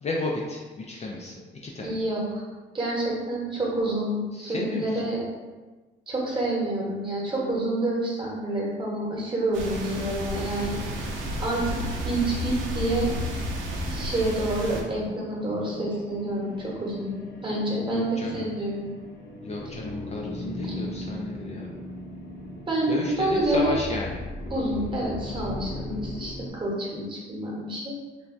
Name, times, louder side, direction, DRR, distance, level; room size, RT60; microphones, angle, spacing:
voice 1, 0.0-2.0 4.3-5.0 17.9-18.5 19.4-21.7 22.9-24.2, left 2 dB, 35° left, -2 dB, 0.4 m, -33 dB
voice 2, 1.8-2.4 2.7-5.2 6.1-10.8 11.4-11.8 12.0-13.1 13.9-17.1 17.4-18.0 18.3-18.9 20.6-20.7 22.7-23.7 24.5-28.0, right 1 dB, 25° right, -4 dB, 1.0 m, -28 dB
sound 1, 9.5-14.8, equal, 75° right, 0.6 m, -31 dB
sound 2, 10.5-26.5, left 1 dB, 60° left, 0.8 m, -39 dB
3.2 x 2.2 x 2.5 m, 1.3 s
cardioid pair, 90°, 20 cm